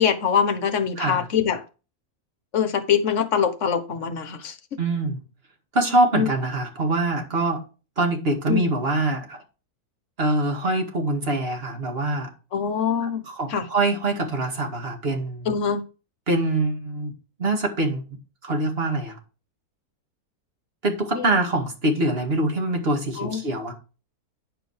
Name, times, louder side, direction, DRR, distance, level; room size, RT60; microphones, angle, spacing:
voice 1, 0.0-1.6 2.5-4.8 6.1-6.3 8.5-8.7 12.5-13.2 13.5-13.7 15.4-15.8 21.1-21.3 23.2-23.4, left 7 dB, 55° left, 1.3 m, -23 dB
voice 2, 4.8-5.2 5.7-7.6 8.0-9.4 10.2-12.3 13.3-15.5 16.3-17.1 17.4-18.0 18.4-19.2 20.8-23.7, right 2 dB, 40° right, 2.2 m, -24 dB
10.0 x 5.1 x 5.0 m
omnidirectional pair, 1.7 m